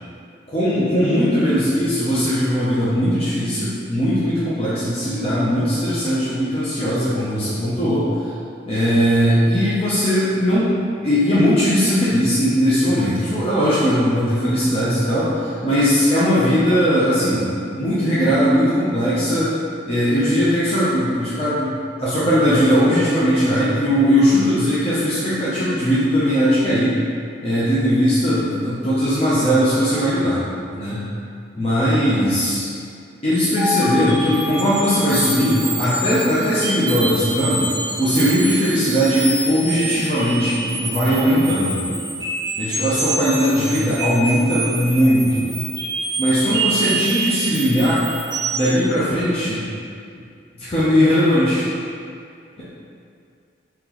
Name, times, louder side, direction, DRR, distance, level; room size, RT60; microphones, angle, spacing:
voice 1, 0.5-8.1 8.6-10.7 11.0-17.4 17.8-19.5 19.9-27.0 27.4-30.4 30.7-31.0 31.6-32.6 33.2-37.7 38.0-41.9 42.6-45.5 46.2-48.0 48.5-49.6 50.6-51.7, equal, 30° left, -10 dB, 0.6 m, -19 dB
sound 1, 33.3-48.8, right 2 dB, 20° right, 0.5 m, -27 dB
3.8 x 2.9 x 3.0 m, 2.4 s
head